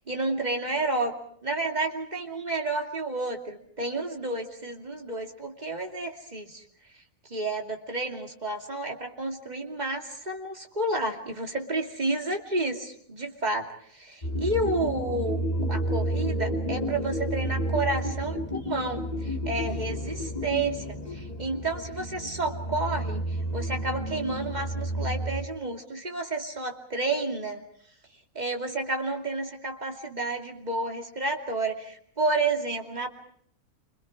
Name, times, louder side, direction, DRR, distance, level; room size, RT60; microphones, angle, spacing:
voice 1, 0.1-1.1 1.4-6.6 7.3-13.7 13.9-15.4 15.7-27.6 28.3-33.1, right 2 dB, 30° right, 2 dB, 2.8 m, -30 dB
sound 1, 14.2-25.5, right 1 dB, 30° left, 3.9 m, -31 dB
28.5 x 26.0 x 4.8 m, 0.62 s
omnidirectional pair, 1.4 m